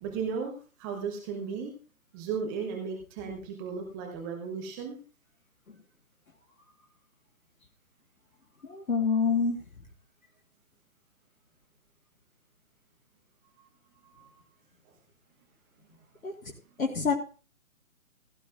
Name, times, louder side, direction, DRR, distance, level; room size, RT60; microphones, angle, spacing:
voice 1, 0.0-1.7 2.1-5.0 14.0-14.4, right 6 dB, 15° right, 2 dB, 1.2 m, -35 dB
voice 2, 8.6-9.6 16.2-16.3 16.8-17.1, left 5 dB, 70° left, 1 dB, 1.8 m, -26 dB
17.0 x 11.5 x 2.5 m, 0.35 s
figure-of-eight pair, 140°, 42 cm